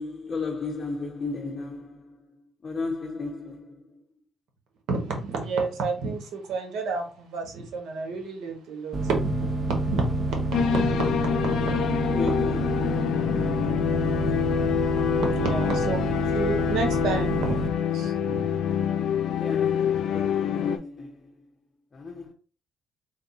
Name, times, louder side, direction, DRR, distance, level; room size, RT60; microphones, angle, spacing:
voice 1, 0.0-2.0 2.6-3.7 12.2-13.1 19.4-21.2 21.9-22.3, left 3 dB, 40° left, 0.7 m, -34 dB
voice 2, 4.9-11.8 12.3-12.4 15.3-16.0 16.3-18.6, right 3 dB, 85° right, 1.1 m, -30 dB
sound 1, 8.9-17.7, right 2 dB, 30° right, 0.9 m, -29 dB
sound 2, 10.5-20.8, left 9 dB, 80° left, 0.5 m, -26 dB
3.5 x 2.3 x 3.9 m
cardioid pair, 90°, 0 cm